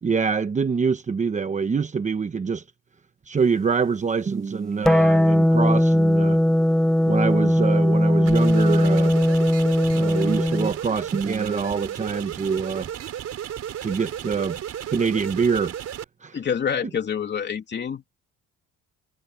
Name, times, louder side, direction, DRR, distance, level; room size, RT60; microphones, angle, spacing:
voice 1, 0.0-2.6 3.3-6.4 7.0-9.2 9.9-12.9 13.8-14.6 14.9-15.7 16.2-16.4, right 5 dB, 25° right, 1.0 m, -25 dB
sound 1, 4.8-10.7, left 1 dB, ahead, 0.7 m, -19 dB
sound 2, 8.2-16.0, right 10 dB, 55° right, 5.2 m, -34 dB
voice 2, 16.3-18.2, left 7 dB, 35° left, 2.9 m, -27 dB
cardioid pair, 150°, 30 cm